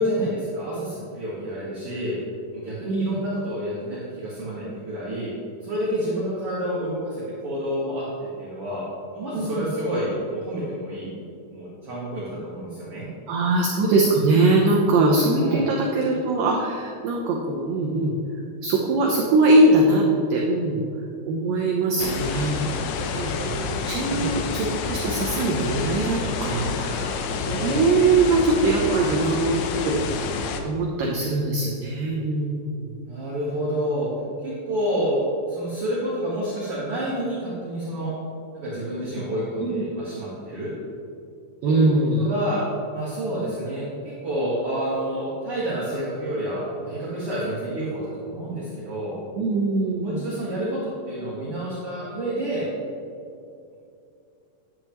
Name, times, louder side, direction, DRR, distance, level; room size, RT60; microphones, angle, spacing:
voice 1, 0.0-2.2 2.5-5.3 5.6-8.8 9.1-11.1 11.5-13.1 15.4-15.7 24.1-24.4 27.5-27.8 33.1-34.1 34.4-35.2 35.5-38.1 38.5-40.7 41.6-41.9 42.2-42.6 42.9-49.2 50.0-52.7, right 1 dB, 50° right, -9 dB, 1.9 m, -29 dB
voice 2, 2.9-3.2 9.3-9.7 13.3-18.1 18.6-20.0 20.3-20.8 21.3-22.8 23.1-27.2 27.5-30.0 30.6-33.0 39.6-39.8 41.6-42.3 49.4-50.2, right 2 dB, 85° right, -1 dB, 1.9 m, -22 dB
sound 1, 22.0-30.6, left 4 dB, 85° left, 2.9 m, -28 dB
10.5 x 9.7 x 3.0 m, 2.6 s
omnidirectional pair, 5.0 m